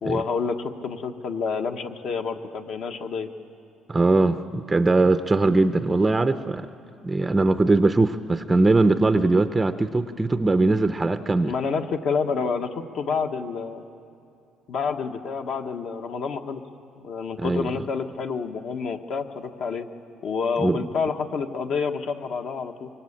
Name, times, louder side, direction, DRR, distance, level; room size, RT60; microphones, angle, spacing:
voice 1, 0.0-3.3 11.5-13.8 14.7-16.6 17.0-19.9 20.2-22.9, left 5 dB, 55° left, 5 dB, 1.3 m, -28 dB
voice 2, 3.9-6.7 7.0-11.5 17.4-17.8 20.6-20.8, right 2 dB, 15° right, 10 dB, 0.6 m, -21 dB
24.5 x 23.5 x 8.7 m, 2.5 s
cardioid pair, 145°, 0 cm